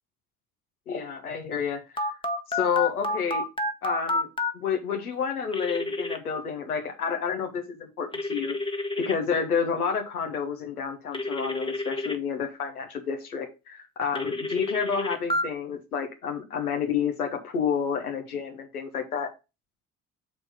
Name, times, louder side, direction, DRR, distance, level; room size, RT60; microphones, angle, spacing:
voice 1, 0.9-2.1 2.5-3.4 3.8-4.3 4.5-8.6 9.0-19.3, left 6 dB, 80° left, 3 dB, 1.3 m, -29 dB
Telephone, 2.0-4.5 5.5-6.2 8.1-9.1 11.1-12.2 14.2-15.4, left 2 dB, 10° left, 1.2 m, -29 dB
7.3 x 4.5 x 4.8 m, 0.27 s
figure-of-eight pair, 45°, 44 cm